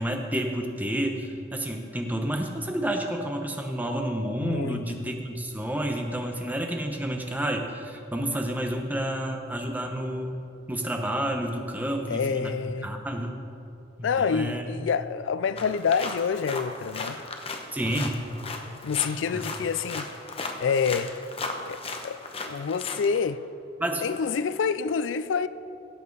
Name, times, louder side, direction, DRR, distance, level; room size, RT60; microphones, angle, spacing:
voice 1, 0.0-10.4 10.7-13.4 14.0-14.7 17.7-18.2 19.3-19.4 23.8-24.1, right 1 dB, 10° right, 0.9 m, -30 dB
voice 2, 4.4-4.8 12.1-12.9 14.0-17.2 18.8-20.1 20.6-21.1 21.7-22.2 22.5-23.4 24.0-25.5, left 6 dB, 85° left, 0.4 m, -27 dB
sound 1, 15.6-23.2, left 3 dB, 30° left, 0.9 m, -36 dB
17.0 x 7.5 x 4.0 m
head